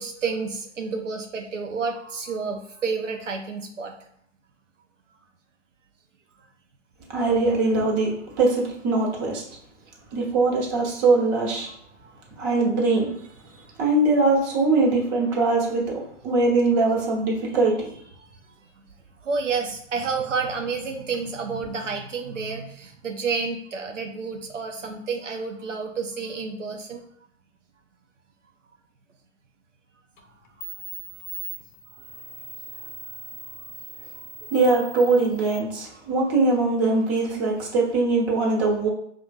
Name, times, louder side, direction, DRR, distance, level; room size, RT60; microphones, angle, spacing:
voice 1, 0.0-3.9 19.2-27.0, right 5 dB, 90° right, 3 dB, 0.5 m, -30 dB
voice 2, 7.1-8.1 8.4-9.4 10.1-11.7 12.4-13.1 13.8-17.9 34.5-38.9, right 3 dB, 35° right, -2 dB, 1.2 m, -22 dB
sound 1, 30.2-30.3 30.6-35.6, right 1 dB, 40° left, 0.6 m, -40 dB
5.3 x 2.5 x 2.3 m, 0.68 s
figure-of-eight pair, 105°, 36 cm